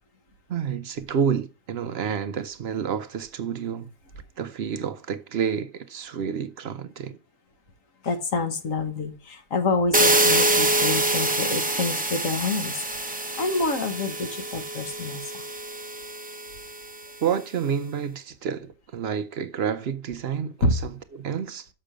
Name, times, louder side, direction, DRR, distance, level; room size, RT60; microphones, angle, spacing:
voice 1, 0.5-3.9 4.4-7.2 17.2-20.9 21.2-21.7, right 7 dB, 60° right, 0.7 m, -29 dB
voice 2, 8.0-15.4 20.6-20.7, left 3 dB, 60° left, 1.5 m, -28 dB
sound 1, 9.9-16.8, right 1 dB, 15° right, 0.3 m, -25 dB
6.5 x 6.0 x 5.0 m
omnidirectional pair, 1.6 m